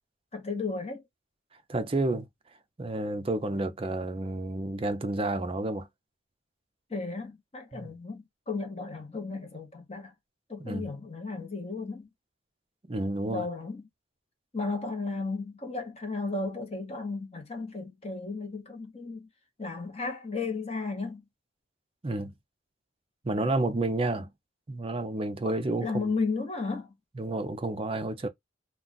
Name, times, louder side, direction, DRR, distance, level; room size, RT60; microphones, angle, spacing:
voice 1, 0.3-1.0 6.9-10.1 10.5-12.1 13.3-13.8 14.5-19.3 19.6-21.2 25.4-26.9, left 3 dB, 30° left, 0.8 m, -34 dB
voice 2, 1.7-2.3 2.8-5.9 7.7-7.9 10.6-10.8 12.9-13.5 22.0-22.3 23.2-24.3 24.7-26.0 27.2-28.3, right 2 dB, 25° right, 0.4 m, -30 dB
2.3 x 2.3 x 3.8 m
head